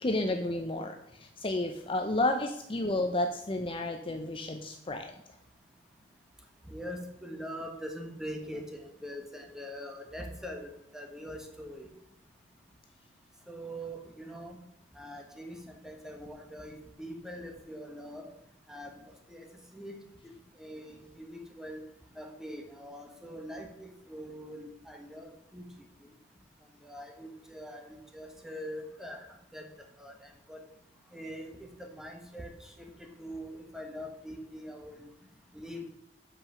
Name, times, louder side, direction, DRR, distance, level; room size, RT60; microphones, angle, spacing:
voice 1, 0.0-1.0 1.4-5.1, left 2 dB, 30° left, 5 dB, 0.6 m, -31 dB
voice 2, 6.7-11.9 13.5-14.6 14.9-18.3 18.7-19.5 19.7-20.3 20.6-21.8 22.1-26.1 26.8-29.3 29.5-29.7 30.0-30.6 31.1-35.1 35.5-35.9, equal, 5° right, 3 dB, 1.4 m, -43 dB
8.3 x 5.7 x 6.3 m, 0.77 s
head